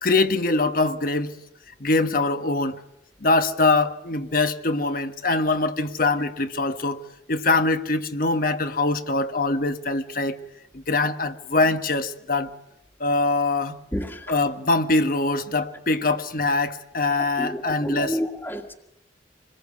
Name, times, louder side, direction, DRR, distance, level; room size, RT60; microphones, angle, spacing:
voice 1, 0.0-1.3 1.8-2.8 3.2-7.0 7.3-10.4 10.7-12.5 13.0-13.8 14.3-18.2, left 3 dB, 50° left, 1.3 m, -23 dB
voice 2, 17.4-18.7, equal, 10° left, 1.7 m, -29 dB
26.5 x 20.5 x 8.4 m
head